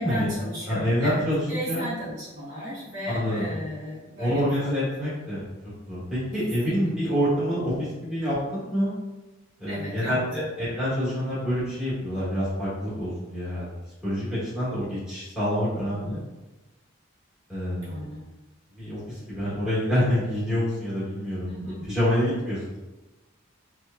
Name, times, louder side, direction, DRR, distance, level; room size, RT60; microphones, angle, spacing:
voice 1, 0.0-4.5 6.4-6.9 9.7-10.4 17.8-18.2 21.4-21.9, equal, 55° right, -9 dB, 1.2 m, -35 dB
voice 2, 0.7-1.8 3.1-3.5 4.2-5.4 5.9-8.9 9.6-13.7 14.0-16.2 17.5-18.0 18.7-21.5 21.8-22.8, equal, 5° right, -12 dB, 1.0 m, -27 dB
3.0 x 2.1 x 2.3 m, 1.1 s
head